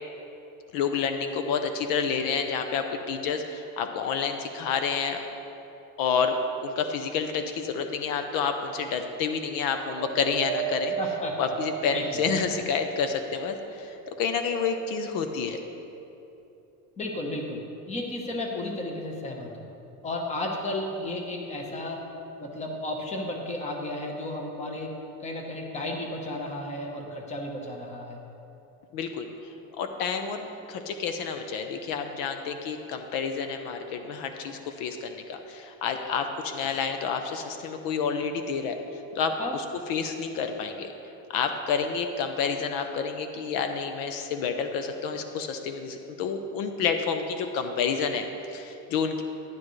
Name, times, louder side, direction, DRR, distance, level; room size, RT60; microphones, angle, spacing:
voice 1, 0.7-5.2 6.0-10.9 11.4-15.6 28.9-29.3 29.8-38.8 39.1-39.6 39.9-40.9 41.3-49.2, left 6 dB, 70° left, 7 dB, 0.8 m, -29 dB
Wind, 9.9-13.5 14.1-15.1 15.9-16.0, right 8 dB, 50° right, 0.5 m, -35 dB
voice 2, 11.0-11.5 11.9-12.1 17.0-19.6 20.0-22.1 22.4-28.2 39.4-39.5, left 1 dB, 20° left, 1 dB, 1.1 m, -33 dB
12.0 x 10.5 x 3.2 m, 2.9 s
cardioid pair, 160°, 35 cm